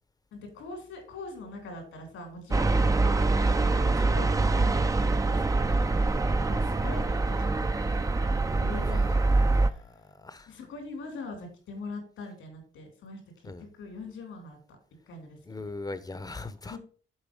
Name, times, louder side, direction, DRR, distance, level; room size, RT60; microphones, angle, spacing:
voice 1, 0.3-2.7 3.5-5.0 5.3-6.0 6.3-8.1 8.6-9.8 10.5-13.2 13.7-14.6 15.1-15.6 16.6-16.8, left 2 dB, 85° left, 3.3 m, -42 dB
sound 1, 2.5-9.7, right 3 dB, 15° right, 0.5 m, -24 dB
voice 2, 8.8-10.6 13.4-13.7 15.4-16.8, left 3 dB, 20° left, 0.8 m, -41 dB
7.4 x 4.3 x 5.2 m
cardioid pair, 90°, 20 cm